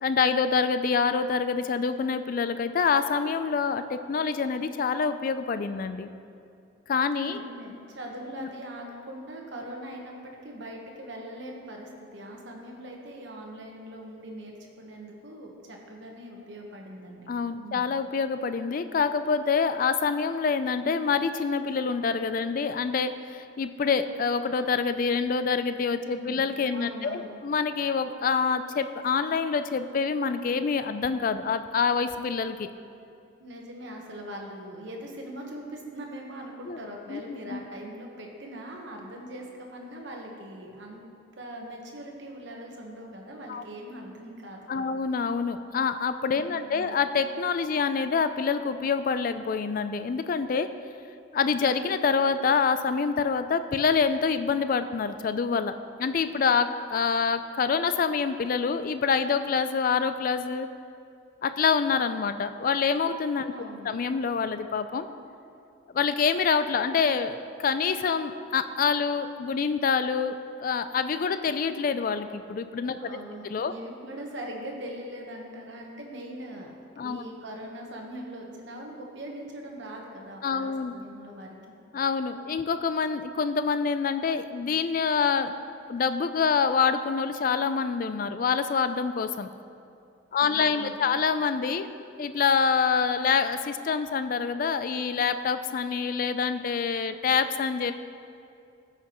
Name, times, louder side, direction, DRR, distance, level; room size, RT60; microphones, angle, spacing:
voice 1, 0.0-6.1 6.9-7.4 8.4-8.5 17.3-32.7 36.7-36.8 37.1-37.6 43.5-43.6 44.7-50.7 51.3-60.7 61.4-63.5 63.8-65.1 65.9-70.4 70.6-73.0 73.5-73.7 77.0-77.2 80.4-80.9 81.9-85.5 85.9-89.5 90.3-91.9 92.2-97.9, left 5 dB, 45° left, 11 dB, 0.3 m, -26 dB
voice 2, 7.2-17.3 17.6-17.9 26.0-27.4 33.4-41.0 41.4-45.0 46.4-47.0 63.5-64.0 73.0-76.7 77.0-81.6 90.4-91.2, right 1 dB, 60° right, 0 dB, 1.1 m, -41 dB
14.0 x 5.7 x 3.0 m, 2.5 s
head